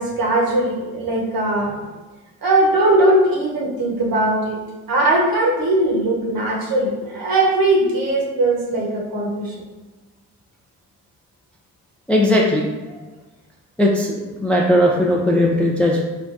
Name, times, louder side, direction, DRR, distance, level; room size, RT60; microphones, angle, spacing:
voice 1, 0.0-1.7 2.4-4.6 4.9-9.5, right 1 dB, 50° right, -3 dB, 1.2 m, -19 dB
voice 2, 12.1-12.7 13.8-16.0, left 1 dB, 5° left, -2 dB, 0.4 m, -17 dB
3.5 x 2.1 x 2.6 m, 1.2 s
hypercardioid pair, 40°, 43 cm